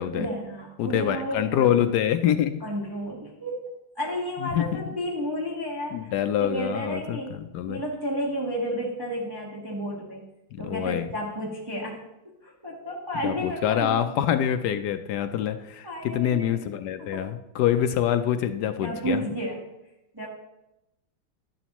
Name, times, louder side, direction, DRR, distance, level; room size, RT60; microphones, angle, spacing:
voice 1, 0.1-1.8 2.6-3.6 3.9-7.4 7.7-10.2 10.6-12.0 12.4-14.0 15.8-16.6 17.0-17.3 18.8-19.7 20.1-20.3, equal, 15° right, -3 dB, 1.2 m, -32 dB
voice 2, 0.8-2.6 4.4-5.0 5.9-7.8 10.5-11.1 13.2-19.2, left 10 dB, 75° left, 9 dB, 0.9 m, -26 dB
11.5 x 11.0 x 3.0 m, 0.92 s
omnidirectional pair, 2.3 m